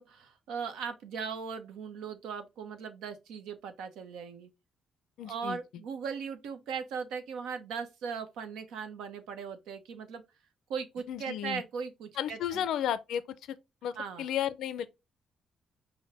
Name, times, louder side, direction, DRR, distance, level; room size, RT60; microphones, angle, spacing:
voice 1, 0.0-4.5 5.2-10.2 10.7-12.7 13.9-14.3, right 6 dB, 85° right, 0.8 m, -38 dB
voice 2, 5.2-5.6 11.1-11.6 12.2-13.2 13.5-13.6 13.8-14.9, left 10 dB, 80° left, 0.4 m, -33 dB
5.6 x 2.1 x 4.0 m
cardioid pair, 90°, 0 cm